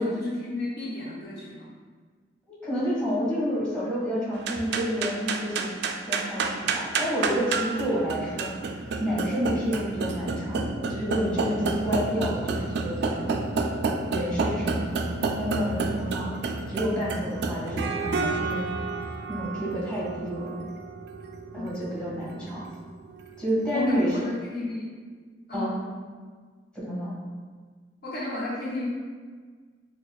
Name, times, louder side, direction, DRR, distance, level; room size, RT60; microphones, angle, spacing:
voice 1, 0.0-1.7 21.6-21.7 23.7-24.9 25.5-25.8 28.0-28.9, left 2 dB, 60° left, -6 dB, 0.8 m, -32 dB
voice 2, 2.5-5.7 6.1-8.6 9.0-13.4 14.1-14.9 15.4-16.3 16.7-18.7 19.3-20.5 21.5-22.6 23.4-24.2 25.5-25.8 26.7-27.1, equal, 5° left, -7 dB, 1.2 m, -29 dB
sound 1, 4.4-23.9, right 4 dB, 65° right, 0.3 m, -30 dB
6.5 x 2.3 x 2.3 m, 1.5 s
head